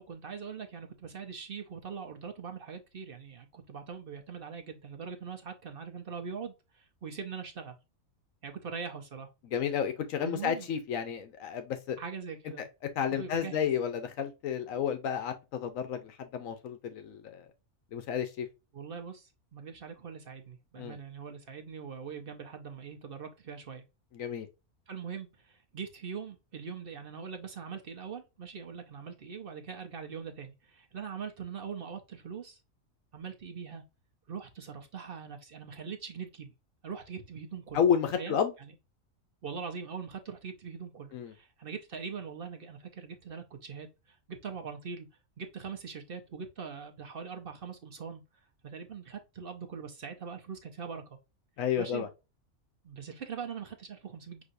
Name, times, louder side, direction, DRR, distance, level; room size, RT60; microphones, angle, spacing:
voice 1, 0.0-7.8 8.4-9.3 10.2-10.7 12.0-12.7 13.1-13.7 18.7-23.8 24.9-32.6 33.1-33.8 34.3-36.5 36.8-37.8 38.1-38.7 39.4-45.1 45.4-48.2 48.6-51.2 51.8-52.1 52.8-54.4, right 6 dB, 50° right, 0.8 m, -42 dB
voice 2, 9.4-12.0 13.0-17.5 17.9-18.5 20.8-21.0 24.1-24.5 37.7-38.5 41.1-41.3 51.6-52.1, left 8 dB, 80° left, 1.1 m, -31 dB
6.1 x 2.7 x 2.5 m
omnidirectional pair, 1.4 m